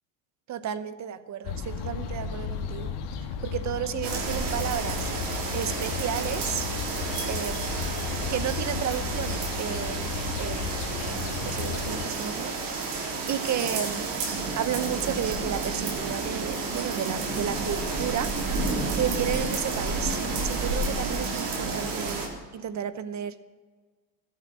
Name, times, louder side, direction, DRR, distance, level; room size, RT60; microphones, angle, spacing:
voice 1, 0.5-2.9 3.4-5.1 5.5-6.7 7.3-7.8 8.1-13.0 13.3-14.2 14.5-18.3 18.9-23.4, right 9 dB, 40° right, 13 dB, 0.9 m, -33 dB
sound 1, 1.4-12.1, left 7 dB, 75° left, 1.8 m, -34 dB
sound 2, 4.0-22.3, right 3 dB, 75° right, 3.8 m, -31 dB
14.5 x 8.3 x 7.6 m, 1.5 s
supercardioid pair, 95°, 42 cm